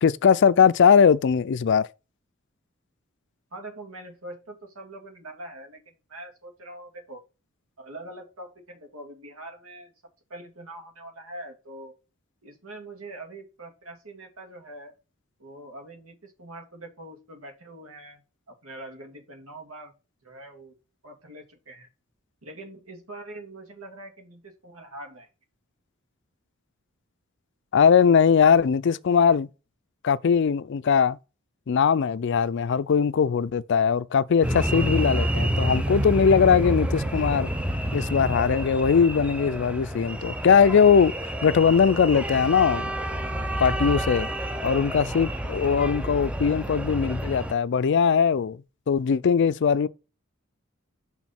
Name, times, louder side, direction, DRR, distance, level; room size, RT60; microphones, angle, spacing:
voice 1, 0.0-1.9 27.7-29.5 30.0-31.2 31.7-37.5 37.9-41.1 41.4-42.9 43.6-44.3 44.6-48.6 48.9-49.9, left 6 dB, 55° left, 0.4 m, -20 dB
voice 2, 3.5-7.2 7.8-9.9 10.3-11.9 12.4-15.0 15.4-19.9 20.2-20.7 21.0-21.9 22.4-25.3, right 1 dB, 80° right, 2.3 m, -43 dB
sound 1, 34.4-47.5, right 1 dB, 5° right, 0.6 m, -29 dB
6.2 x 3.7 x 5.8 m
head